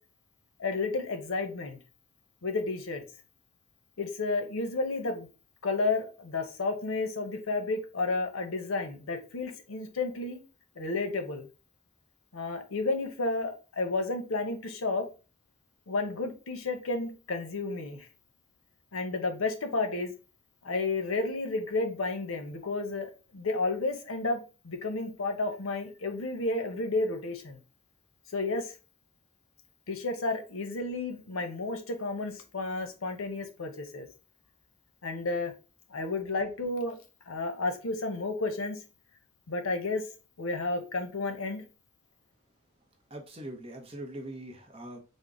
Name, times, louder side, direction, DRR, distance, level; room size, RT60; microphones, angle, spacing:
voice 1, 0.6-1.8 2.4-3.0 4.0-5.3 5.6-10.4 10.8-11.5 12.3-15.1 15.9-18.1 18.9-20.1 20.6-27.6 28.3-28.7 29.9-34.1 35.0-35.5 35.9-37.0 37.3-38.8 39.5-40.0 40.4-41.6, left 3 dB, 90° left, 0.7 m, -31 dB
voice 2, 43.1-45.0, right 1 dB, 30° right, 0.6 m, -42 dB
3.6 x 2.1 x 3.7 m
head